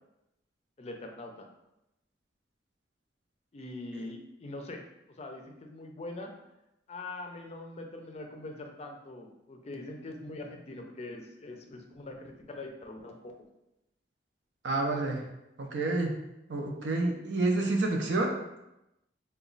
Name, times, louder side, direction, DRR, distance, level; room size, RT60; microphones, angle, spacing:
voice 1, 0.8-1.5 3.5-4.8 5.2-6.3 6.9-13.3, left 2 dB, 35° left, 3 dB, 0.4 m, -43 dB
voice 2, 14.6-15.2 15.6-16.1 16.5-18.6, right 2 dB, 85° right, 2 dB, 0.5 m, -29 dB
2.9 x 2.2 x 3.9 m, 0.89 s
head